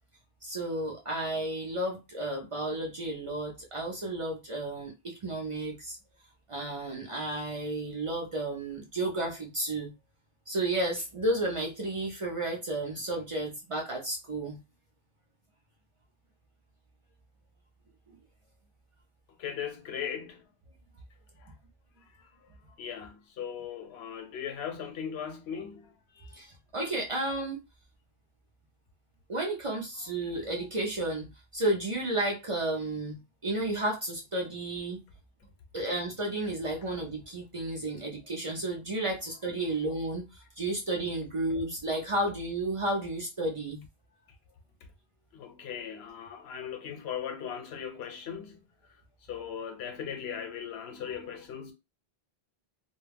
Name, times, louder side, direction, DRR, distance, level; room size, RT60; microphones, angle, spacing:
voice 1, 0.4-6.0 6.5-9.9 10.5-14.6 26.4-27.6 29.3-35.0 35.7-40.2 40.6-43.8, right 1 dB, 40° right, 0.5 m, -32 dB
voice 2, 19.4-20.4 21.4-21.5 22.2-22.3 22.8-26.5 45.3-48.6 49.3-51.7, left 8 dB, 85° left, 0.9 m, -38 dB
2.3 x 2.1 x 3.3 m
omnidirectional pair, 1.0 m